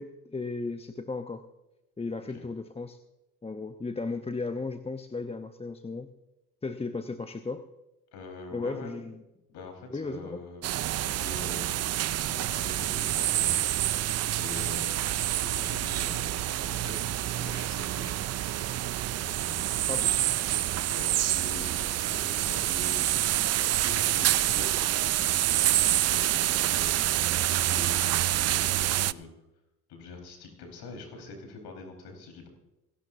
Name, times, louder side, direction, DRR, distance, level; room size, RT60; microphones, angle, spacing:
voice 1, 0.0-1.4 2.0-3.0 3.4-6.1 6.6-7.7 8.5-9.2 9.9-10.4 19.9-20.2, left 3 dB, 15° left, 9 dB, 0.8 m, -35 dB
voice 2, 8.1-8.9 9.5-10.8 11.0-11.6 12.1-13.6 14.3-17.0 17.3-18.2 19.2-20.0 20.8-23.0 23.6-29.3 29.9-32.5, left 3 dB, 65° left, 3 dB, 4.4 m, -44 dB
sound 1, 10.6-29.1, right 13 dB, 35° right, 0.5 m, -27 dB
25.0 x 12.0 x 2.7 m, 0.97 s
hypercardioid pair, 65°, 44 cm